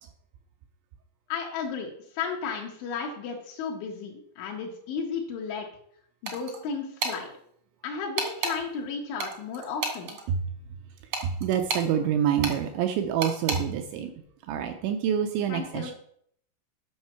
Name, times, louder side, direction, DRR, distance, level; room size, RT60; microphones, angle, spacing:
voice 1, 1.3-5.7 6.2-7.3 7.8-10.2 15.5-15.9, left 5 dB, 70° left, 0 dB, 3.4 m, -34 dB
sound 1, 6.3-6.6 7.0-7.2 8.2-8.6 9.2-10.2 11.1-11.9 12.4-12.6 13.2-13.6, right 4 dB, 65° right, 1.6 m, -30 dB
voice 2, 11.2-14.1 14.4-15.9, right 8 dB, 90° right, 6 dB, 2.7 m, -27 dB
10.5 x 6.5 x 5.9 m, 0.67 s
omnidirectional pair, 5.9 m